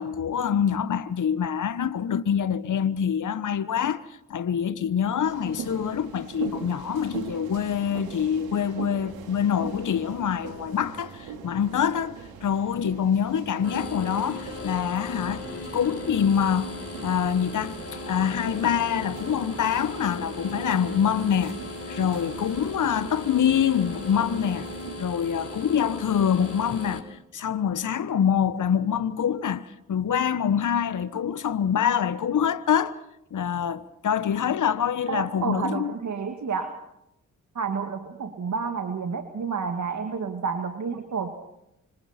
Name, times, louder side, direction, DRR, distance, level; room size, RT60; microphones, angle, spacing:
voice 1, 0.0-4.0 4.3-15.5 15.7-24.7 25.0-32.9 33.3-35.9, left 8 dB, 55° left, 1.2 m, -25 dB
sound 1, 5.2-24.9, right 6 dB, 80° right, 2.8 m, -42 dB
sound 2, 13.6-27.0, left 2 dB, 40° left, 4.0 m, -37 dB
voice 2, 35.1-36.8 37.5-41.3, right 5 dB, 50° right, 2.2 m, -30 dB
29.0 x 26.0 x 4.4 m
hypercardioid pair, 40°, 36 cm